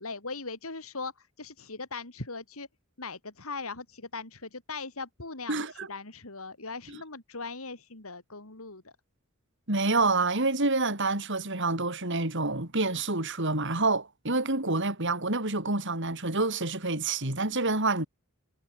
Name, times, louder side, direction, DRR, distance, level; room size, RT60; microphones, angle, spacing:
voice 1, 0.0-2.7 3.0-8.9 18.0-18.1, left 3 dB, 75° left, 3.6 m, -40 dB
voice 2, 5.5-5.9 9.7-18.1, right 3 dB, 60° right, 5.7 m, -27 dB
head